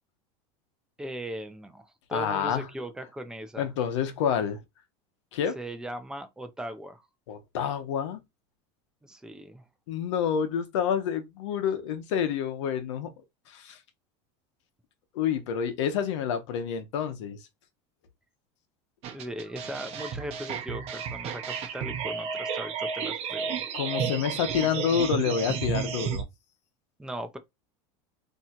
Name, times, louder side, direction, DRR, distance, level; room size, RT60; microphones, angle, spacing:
voice 1, 1.0-3.7 5.6-7.0 9.0-9.6 19.1-23.6 27.0-27.4, right 1 dB, 5° right, 0.5 m, -38 dB
voice 2, 2.1-2.7 3.6-4.6 5.3-5.6 7.3-8.2 9.9-13.1 13.5-13.8 15.1-17.4 23.7-26.3, left 8 dB, 90° left, 0.9 m, -28 dB
sound 1, 19.0-26.2, right 7 dB, 45° right, 0.8 m, -32 dB
2.8 x 2.4 x 4.2 m
supercardioid pair, 145°, 15 cm